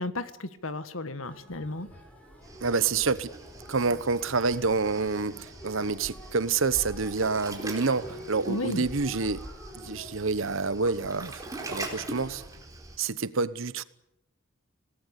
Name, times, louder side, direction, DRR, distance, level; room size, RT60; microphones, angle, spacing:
voice 1, 0.0-1.9 8.5-8.8, left 2 dB, 75° left, 1.7 m, -33 dB
sound 1, 1.2-10.1, equal, 5° left, 5.6 m, -48 dB
Waves surf, 2.4-13.0, right 2 dB, 15° right, 4.2 m, -42 dB
voice 2, 2.6-3.3 3.7-9.4 9.7-11.4 11.7-12.4 13.0-13.8, right 4 dB, 70° right, 1.0 m, -28 dB
26.5 x 18.5 x 8.3 m
head